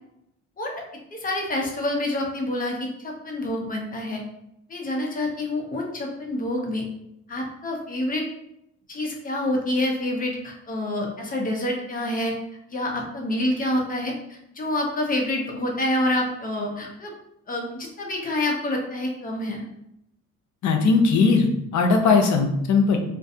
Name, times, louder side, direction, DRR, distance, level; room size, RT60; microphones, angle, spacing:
voice 1, 1.1-4.2 4.7-6.8 7.3-8.3 8.9-12.3 12.7-17.1 17.5-19.6, left 1 dB, 30° left, 0 dB, 0.7 m, -27 dB
voice 2, 20.6-23.0, left 4 dB, 70° left, 3 dB, 0.6 m, -19 dB
2.5 x 2.2 x 2.7 m, 0.79 s
cardioid pair, 90°, 30 cm